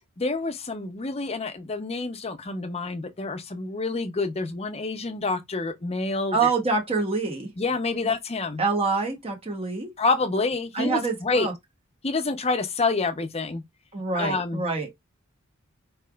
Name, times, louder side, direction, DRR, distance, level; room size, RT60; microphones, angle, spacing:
voice 1, 0.2-6.5 7.6-8.6 10.0-11.5 12.0-13.6 14.1-14.6, left 3 dB, 30° left, 0.7 m, -27 dB
voice 2, 6.3-7.5 8.0-8.1 8.6-9.9 10.7-11.5 13.9-14.9, right 4 dB, 30° right, 0.9 m, -26 dB
4.6 x 3.2 x 2.3 m
head